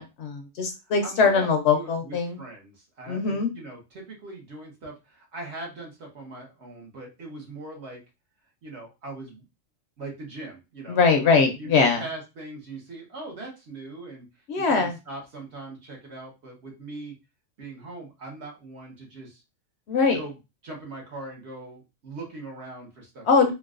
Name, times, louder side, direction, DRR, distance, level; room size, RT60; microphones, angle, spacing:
voice 1, 0.0-2.4 3.1-3.5 10.9-12.0 14.5-14.9 19.9-20.2 23.3-23.5, left 4 dB, 65° left, 5 dB, 0.8 m, -22 dB
voice 2, 1.0-1.5 1.7-8.0 8.6-9.4 10.0-11.0 11.6-14.3 14.7-17.1 17.6-19.4 20.1-20.4 20.6-23.5, right 2 dB, 60° right, -1 dB, 1.3 m, -40 dB
3.8 x 2.3 x 2.4 m, 0.26 s
omnidirectional pair, 1.3 m